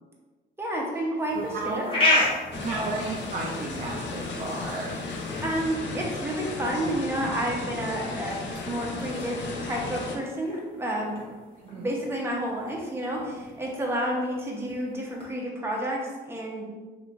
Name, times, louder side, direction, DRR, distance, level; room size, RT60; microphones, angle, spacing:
voice 1, 0.6-1.4 1.6-1.8 5.4-11.2 11.8-16.7, right 1 dB, 10° right, -2 dB, 0.7 m, -30 dB
sound 1, 1.2-15.3, left 1 dB, 25° left, 1.0 m, -34 dB
voice 2, 1.3-2.0 2.5-5.0 11.5-11.9, right 3 dB, 45° right, -3 dB, 0.5 m, -33 dB
sound 2, 2.5-10.2, left 3 dB, 65° left, 0.5 m, -35 dB
3.1 x 2.8 x 2.5 m, 1.3 s
cardioid pair, 90°, 20 cm